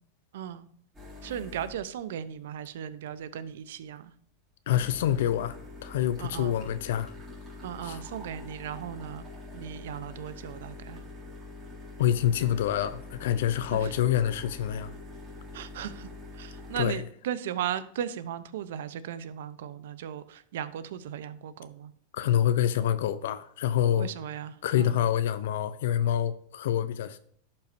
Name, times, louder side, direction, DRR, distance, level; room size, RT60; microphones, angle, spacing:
voice 1, 0.3-0.7 1.2-4.1 6.2-6.6 7.6-9.2 9.5-11.0 13.7-13.9 15.5-16.1 16.4-21.9 23.9-25.0, right 9 dB, 80° right, 0.7 m, -37 dB
sound 1, 0.9-1.9 4.7-16.9, left 2 dB, 20° right, 3.4 m, -44 dB
voice 2, 4.7-7.1 7.8-8.0 12.0-14.9 16.8-17.0 22.1-24.1 24.6-27.2, left 10 dB, 75° left, 0.5 m, -26 dB
11.5 x 5.4 x 2.7 m
supercardioid pair, 135°, 0 cm